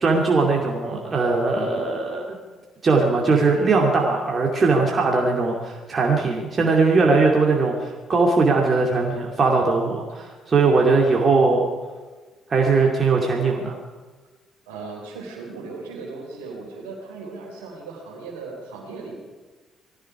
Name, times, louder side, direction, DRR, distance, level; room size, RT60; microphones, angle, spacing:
voice 1, 0.0-2.4 2.8-11.7 12.5-13.8, right 3 dB, 35° right, -1 dB, 2.5 m, -20 dB
voice 2, 14.7-19.2, right 4 dB, 70° right, -1 dB, 3.9 m, -37 dB
20.0 x 14.5 x 4.9 m, 1.3 s
figure-of-eight pair, 45°, 0 cm